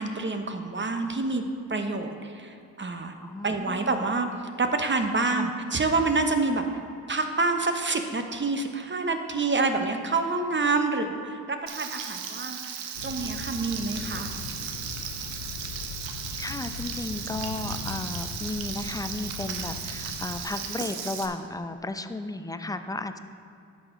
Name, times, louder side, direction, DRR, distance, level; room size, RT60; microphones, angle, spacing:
voice 1, 0.0-1.4 1.7-3.1 3.4-4.3 4.6-6.8 7.1-14.3, right 3 dB, 25° right, 6 dB, 0.9 m, -27 dB
voice 2, 3.2-4.1 5.3-5.5 16.4-23.2, left 2 dB, 10° left, 9 dB, 0.5 m, -34 dB
Frying (food), 11.7-21.3, right 7 dB, 75° right, 0.9 m, -36 dB
sound 1, 12.9-20.4, left 5 dB, 90° left, 0.6 m, -39 dB
10.0 x 6.4 x 3.8 m, 2.5 s
hypercardioid pair, 45°, 45 cm